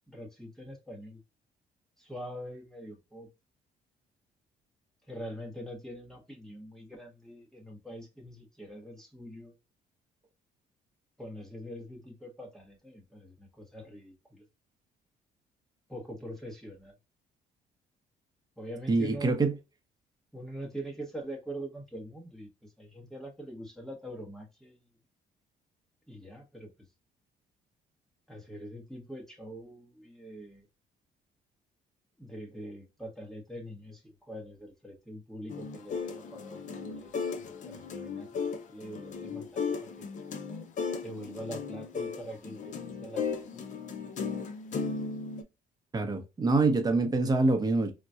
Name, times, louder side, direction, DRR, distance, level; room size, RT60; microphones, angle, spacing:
voice 1, 0.1-1.2 2.0-3.3 5.1-9.5 11.2-14.4 15.9-16.9 18.6-19.4 20.3-24.8 26.1-26.7 28.3-30.6 32.2-40.1 41.0-43.6, equal, 5° left, 1.0 m, -44 dB
voice 2, 18.9-19.5 45.9-47.9, right 3 dB, 25° right, 0.8 m, -25 dB
sound 1, 35.5-45.4, left 5 dB, 50° left, 0.6 m, -36 dB
3.9 x 2.2 x 2.4 m
cardioid pair, 105°, 16 cm